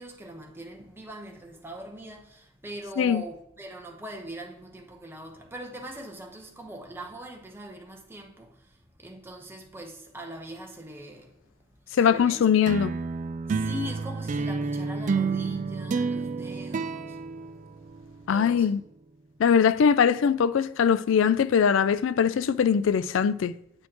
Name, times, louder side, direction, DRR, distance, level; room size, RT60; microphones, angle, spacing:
voice 1, 0.0-11.4 11.7-12.5 13.5-17.2 18.3-18.7, equal, 10° right, 0.9 m, -41 dB
voice 2, 12.0-12.9 18.3-18.8 19.4-23.5, left 7 dB, 65° left, 0.3 m, -21 dB
sound 1, 12.7-18.3, right 4 dB, 35° right, 0.3 m, -30 dB
8.7 x 4.2 x 2.9 m
head